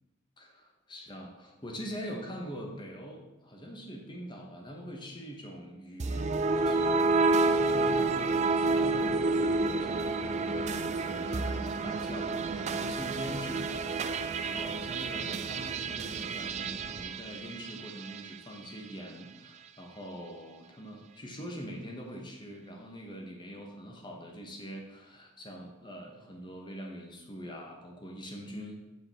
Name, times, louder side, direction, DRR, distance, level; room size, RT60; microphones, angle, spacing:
voice 1, 0.4-28.8, equal, 25° left, 1 dB, 1.1 m, -43 dB
sound 1, 6.0-18.3, right 3 dB, 35° right, 0.4 m, -29 dB
8.1 x 4.9 x 4.3 m, 1.1 s
head